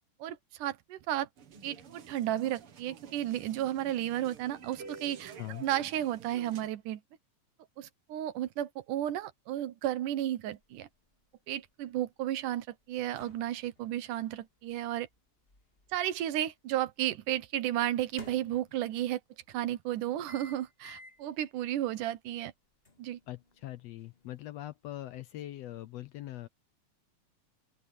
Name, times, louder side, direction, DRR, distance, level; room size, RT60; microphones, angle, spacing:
voice 1, 0.2-1.3 1.6-5.3 5.6-7.0 7.8-10.9 11.5-15.1 15.9-19.2 19.5-22.5 23.0-23.2, right 12 dB, 90° right, 2.6 m, -33 dB
sound 1, 1.4-6.7, right 5 dB, 50° right, 2.3 m, -50 dB
sound 2, 10.6-16.7 17.8-19.1 20.3-21.3 21.8-21.9 22.9-24.5, left 3 dB, 20° left, 2.5 m, -56 dB
voice 2, 23.3-26.5, left 14 dB, 75° left, 1.6 m, -42 dB
open air
omnidirectional pair, 3.5 m